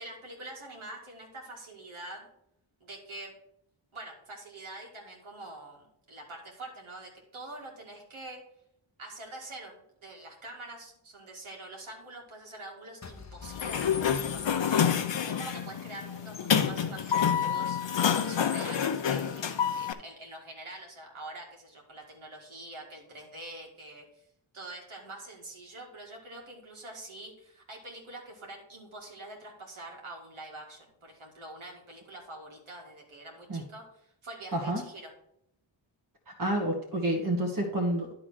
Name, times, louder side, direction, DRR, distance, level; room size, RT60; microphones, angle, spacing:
voice 1, 0.0-2.3 2.8-3.3 3.9-8.4 9.0-17.8 18.2-24.0 24.5-35.1, right 2 dB, 75° right, -1 dB, 2.2 m, -45 dB
sound 1, 13.0-15.4, left 5 dB, 35° left, 0.8 m, -49 dB
Sliding door, 13.4-19.9, left 8 dB, 65° left, 0.8 m, -28 dB
voice 2, 36.4-38.1, right 1 dB, 40° right, 1 dB, 1.5 m, -29 dB
10.0 x 3.8 x 6.3 m, 0.76 s
cardioid pair, 55°, 48 cm